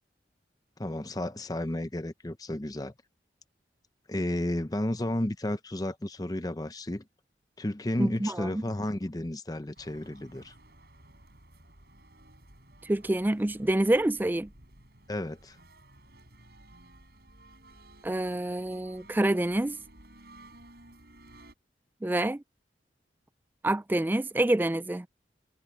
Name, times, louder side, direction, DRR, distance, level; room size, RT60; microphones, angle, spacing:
voice 1, 0.8-2.9 4.1-7.0 7.6-10.5 15.1-15.6, left 1 dB, 20° left, 0.7 m, -32 dB
voice 2, 8.0-8.6 12.8-14.5 18.0-19.8 22.0-22.4 23.6-25.1, right 1 dB, 10° right, 0.3 m, -27 dB
sound 1, 9.7-21.5, right 1 dB, 65° right, 5.7 m, -55 dB
head